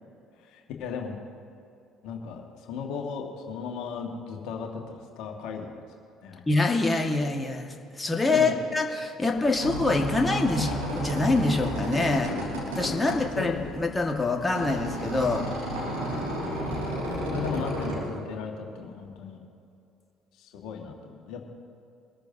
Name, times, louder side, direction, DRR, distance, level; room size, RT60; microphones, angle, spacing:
voice 1, 0.4-1.2 2.0-5.7 6.2-6.4 8.3-8.6 13.1-13.6 17.3-19.4 20.3-21.4, left 6 dB, 65° left, 2 dB, 1.8 m, -36 dB
voice 2, 6.5-10.7 10.9-12.3 12.8-15.5, left 3 dB, 20° left, 2 dB, 1.7 m, -25 dB
sound 1, 9.3-18.0, equal, 85° right, 3.8 m, -32 dB
23.5 x 13.5 x 2.8 m, 2.6 s
hypercardioid pair, 55°, 0 cm